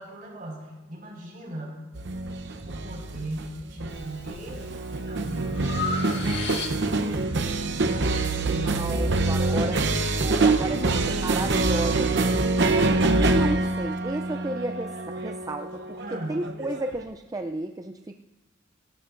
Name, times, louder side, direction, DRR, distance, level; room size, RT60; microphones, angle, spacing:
voice 1, 0.0-1.8 2.7-4.6 5.1-6.8 7.6-9.8 16.0-16.4, right 1 dB, 50° right, -1 dB, 5.0 m, -38 dB
sound 1, 1.9-17.0, right 2 dB, 65° right, 0.8 m, -25 dB
Breathing, 3.9-4.4 4.9-7.1, left 4 dB, 65° left, 1.7 m, -34 dB
voice 2, 8.6-10.0 10.2-12.1 12.7-18.2, right 2 dB, 20° right, 6 dB, 0.4 m, -32 dB
27.0 x 13.0 x 2.6 m, 1.1 s
head